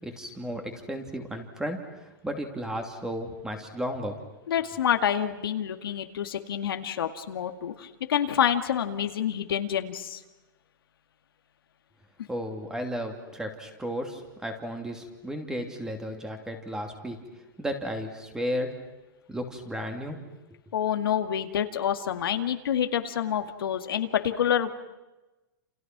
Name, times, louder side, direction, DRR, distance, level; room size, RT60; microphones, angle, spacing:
voice 1, 0.0-4.2 12.3-17.2 17.6-18.7 19.3-20.2, equal, 5° right, 5 dB, 2.8 m, -34 dB
voice 2, 4.5-10.2 20.7-24.7, left 9 dB, 85° left, 7 dB, 2.2 m, -27 dB
29.0 x 28.5 x 6.1 m, 1.1 s
supercardioid pair, 155°, 12 cm